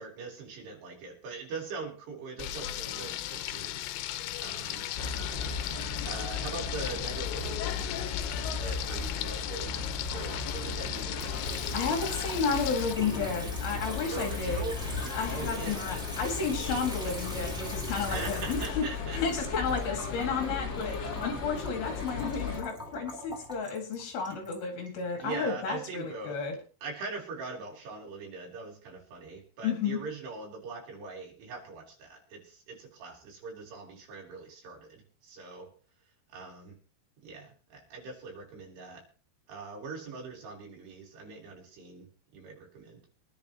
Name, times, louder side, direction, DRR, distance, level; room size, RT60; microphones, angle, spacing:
voice 1, 0.0-3.8 4.4-4.9 6.0-11.4 14.1-16.0 18.1-19.2 25.2-26.4 26.8-35.7 36.3-36.8 37.2-39.0 39.5-42.1 42.3-43.0, right 4 dB, 75° right, -1 dB, 5.8 m, -42 dB
Frying (food), 2.4-12.9, left 13 dB, 85° left, 3.0 m, -37 dB
sound 1, 5.0-22.6, left 4 dB, 50° left, 1.4 m, -36 dB
Water tap faucet / Sink (filling or washing) / Trickle dribble, 11.1-25.2, equal, ahead, 2.8 m, -42 dB
voice 2, 11.7-14.7 15.1-18.9 19.1-26.6 29.6-30.0, left 5 dB, 65° left, 3 dB, 4.0 m, -32 dB
23.5 x 10.5 x 3.1 m, 0.38 s
omnidirectional pair, 4.9 m